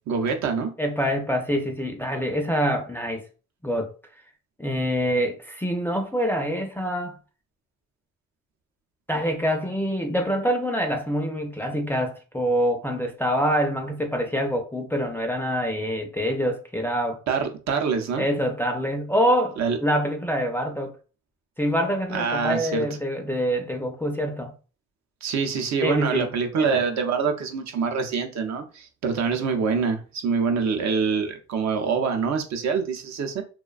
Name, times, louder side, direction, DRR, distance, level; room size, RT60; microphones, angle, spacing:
voice 1, 0.1-0.7 17.3-18.3 19.6-19.8 22.1-22.8 25.2-33.4, right 5 dB, 65° right, 0.6 m, -25 dB
voice 2, 0.8-3.2 3.6-3.9 4.6-7.2 9.1-17.2 18.2-21.0 21.6-24.5 25.8-26.8, equal, 5° left, 0.4 m, -25 dB
2.4 x 2.2 x 2.3 m
cardioid pair, 90°, 30 cm